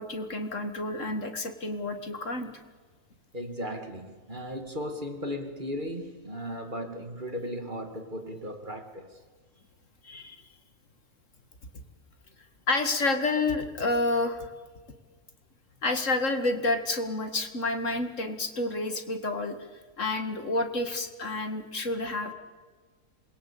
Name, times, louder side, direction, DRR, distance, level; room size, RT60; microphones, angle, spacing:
voice 1, 0.0-2.5 10.0-10.4 12.7-14.5 15.8-19.6 20.0-22.3, left 2 dB, 55° left, 2.3 m, -29 dB
voice 2, 3.3-9.2, equal, 35° right, 2.5 m, -36 dB
27.5 x 22.0 x 8.6 m
omnidirectional pair, 1.5 m